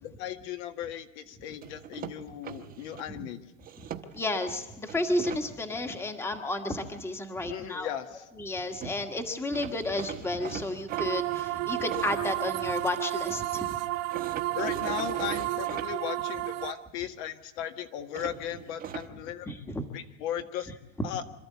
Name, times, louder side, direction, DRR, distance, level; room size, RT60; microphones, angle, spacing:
voice 1, 0.0-3.4 7.5-8.3 14.6-19.5 19.9-20.7 21.0-21.2, left 11 dB, 60° left, 7 dB, 1.8 m, -37 dB
sound 1, 1.6-3.1 3.6-4.4 4.9-5.4 8.5-8.6 8.8-9.0 9.5-13.0 14.1-15.9 18.1-19.1, right 9 dB, 25° right, 1.1 m, -41 dB
voice 2, 4.1-7.9 8.4-13.8 19.5-19.8 21.0-21.1, left 1 dB, 5° left, 6 dB, 1.4 m, -32 dB
sound 2, 10.9-16.7, right 17 dB, 60° right, 1.5 m, -32 dB
26.5 x 13.0 x 8.4 m, 1.0 s
supercardioid pair, 160°, 38 cm